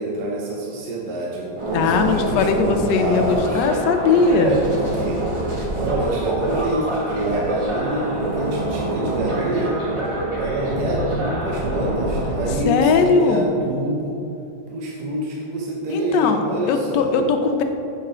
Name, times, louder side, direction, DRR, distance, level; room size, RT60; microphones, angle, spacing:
voice 1, 0.0-3.7 4.3-5.3 5.7-9.8 10.4-14.2 14.7-17.3, right 1 dB, 65° right, -3 dB, 1.2 m, -26 dB
sound 1, 1.6-12.6, right 1 dB, 50° right, 0.3 m, -26 dB
voice 2, 1.7-4.5 12.7-13.5 15.9-16.4 16.7-17.6, left 5 dB, 75° left, 5 dB, 1.1 m, -19 dB
6.7 x 4.0 x 4.8 m, 2.6 s
omnidirectional pair, 2.1 m